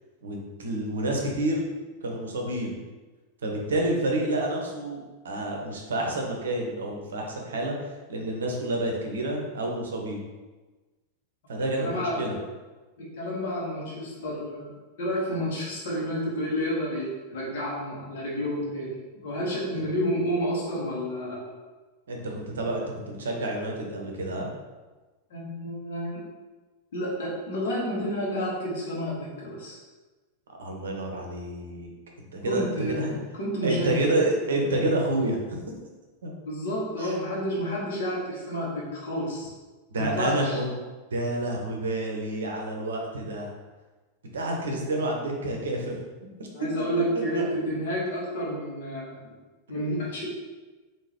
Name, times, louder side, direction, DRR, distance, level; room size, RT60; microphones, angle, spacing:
voice 1, 0.2-1.6 2.0-2.8 3.4-7.7 8.1-10.2 11.5-12.3 22.1-24.5 30.6-31.9 32.2-33.2 33.6-35.6 36.2-36.3 37.0-37.1 39.9-40.7 41.1-43.5 44.3-46.0 47.3-47.4, right 1 dB, 65° right, 0 dB, 0.7 m, -29 dB
voice 2, 11.8-12.3 13.0-14.7 15.0-21.4 25.3-26.2 26.9-29.8 32.5-34.1 36.4-39.5 39.9-40.6 46.5-49.2 49.7-50.3, equal, 60° left, -4 dB, 1.1 m, -30 dB
3.7 x 2.6 x 2.9 m, 1.3 s
figure-of-eight pair, 90°, 0 cm